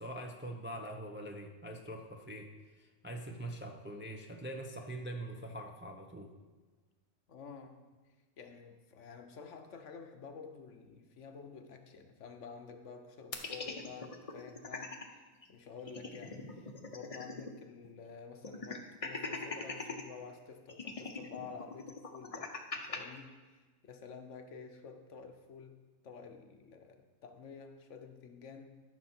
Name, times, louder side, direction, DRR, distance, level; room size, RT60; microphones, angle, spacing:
voice 1, 0.0-2.5 2.8-6.3, right 1 dB, 15° right, 2 dB, 0.4 m, -43 dB
voice 2, 7.3-7.8 8.4-15.2 15.5-22.5 22.7-28.8, left 5 dB, 65° left, 6 dB, 1.1 m, -50 dB
sound 1, 13.3-15.1 15.4-15.5 15.8-17.6 17.8-17.9 18.4-20.0 20.7-23.0, left 3 dB, 35° left, 0.7 m, -41 dB
13.5 x 6.0 x 4.3 m, 1.3 s
omnidirectional pair, 1.4 m